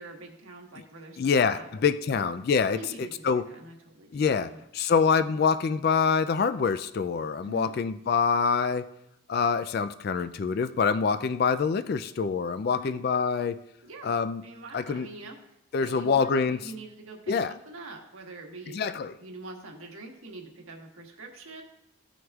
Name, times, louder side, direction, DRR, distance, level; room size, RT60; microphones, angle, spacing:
voice 1, 0.0-1.7 2.1-2.3 2.7-4.6 7.4-7.7 12.7-12.9 13.8-14.1 14.4-18.8 19.2-21.6, right 2 dB, 80° right, 1 dB, 1.5 m, -44 dB
voice 2, 1.2-3.5 4.1-8.9 9.3-13.6 14.0-14.4 14.7-15.1 15.7-16.6 17.3-17.5 18.7-19.2, left 5 dB, 45° left, 12 dB, 0.3 m, -25 dB
16.0 x 6.3 x 2.4 m, 0.82 s
head